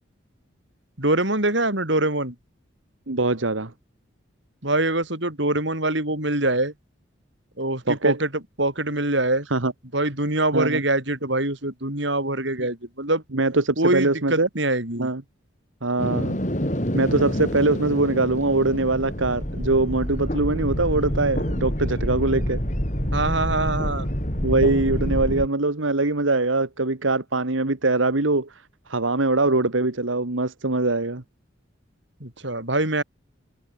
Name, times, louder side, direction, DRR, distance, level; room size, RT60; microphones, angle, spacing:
voice 1, 1.0-2.3 4.6-6.7 7.6-8.3 8.6-9.5 9.9-13.2 13.8-15.1 23.1-24.1 32.2-33.0, right 2 dB, 70° right, 6.3 m, -24 dB
voice 2, 3.1-3.7 7.9-8.2 9.5-9.7 10.5-10.8 12.6-12.7 13.3-14.5 15.0-15.2 15.8-16.4 16.9-22.6 24.4-28.6 28.9-31.2, right 2 dB, 85° right, 1.8 m, -22 dB
sound 1, 16.0-25.5, equal, 40° left, 7.2 m, -27 dB
head